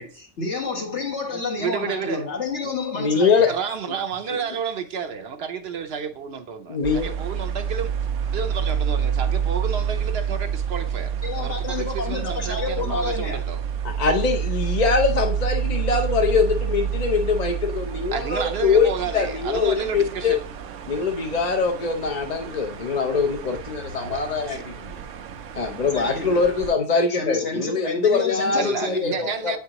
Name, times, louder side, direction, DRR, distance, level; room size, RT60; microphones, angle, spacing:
voice 1, 0.0-3.5 11.2-13.4 25.9-26.4 27.1-29.2, left 3 dB, 70° left, 1.9 m, -29 dB
voice 2, 1.6-2.3 3.5-7.9 8.3-11.1 11.4-13.6 18.1-20.4 24.0-24.6 26.2-26.4 28.5-29.6, right 6 dB, 65° right, 0.8 m, -31 dB
voice 3, 2.9-3.5 6.7-7.1 14.0-18.9 19.1-20.4 20.9-24.9 25.6-29.5, left 5 dB, 45° left, 0.6 m, -23 dB
sound 1, 6.8-26.7, right 8 dB, 90° right, 1.0 m, -28 dB
8.6 x 4.6 x 2.9 m
omnidirectional pair, 1.2 m